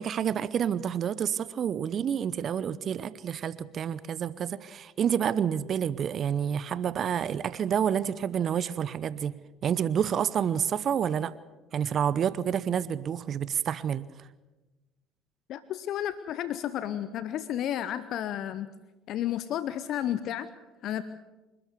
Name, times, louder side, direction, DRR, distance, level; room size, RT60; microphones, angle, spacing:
voice 1, 0.0-9.4 9.6-11.3 11.7-14.1, right 8 dB, 45° right, 18 dB, 0.7 m, -29 dB
voice 2, 15.5-18.7 19.1-20.5 20.8-21.0, left 11 dB, 55° left, 14 dB, 0.8 m, -32 dB
27.0 x 13.0 x 8.3 m, 1.1 s
hypercardioid pair, 60°, 0 cm